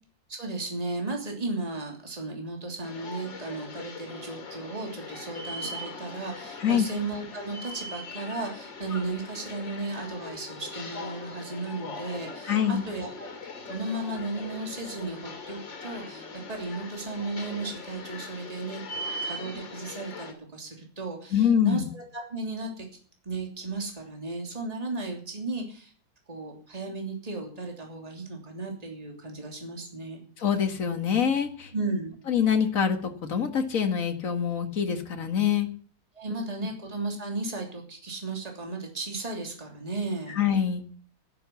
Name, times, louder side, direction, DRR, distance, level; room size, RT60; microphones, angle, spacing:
voice 1, 0.3-13.3 13.7-18.8 19.2-22.9 23.2-25.9 26.3-30.2 31.7-32.2 36.1-40.4, right 3 dB, 20° right, 1 dB, 3.1 m, -35 dB
sound 1, 2.8-20.3, left 2 dB, 75° left, 3.8 m, -40 dB
voice 2, 12.4-12.8 21.3-21.9 30.4-31.7 32.3-35.7 40.3-40.8, left 8 dB, 45° left, 6 dB, 2.1 m, -25 dB
12.5 x 12.0 x 7.1 m, 0.43 s
omnidirectional pair, 2.0 m